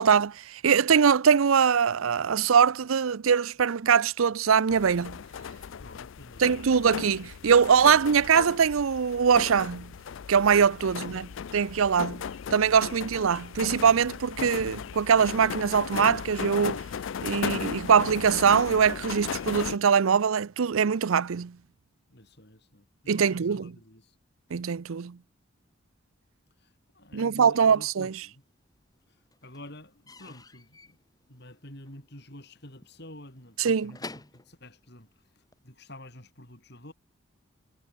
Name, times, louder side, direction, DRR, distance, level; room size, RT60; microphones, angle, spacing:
voice 1, 0.0-5.2 6.4-9.9 10.3-12.2 12.5-16.8 17.2-21.6 23.1-23.7 24.5-25.2 27.1-28.1 33.6-33.9, right 6 dB, 75° right, 0.5 m, -22 dB
sound 1, 4.7-19.8, left 7 dB, 65° left, 0.4 m, -36 dB
voice 2, 5.8-6.6 10.8-11.2 22.1-24.2 26.6-28.4 29.1-29.2 29.4-31.0 31.3-36.9, left 1 dB, 50° left, 7.9 m, -49 dB
Slam / Squeak / Wood, 27.9-28.6 28.9-35.7, left 3 dB, 20° left, 2.2 m, -49 dB
head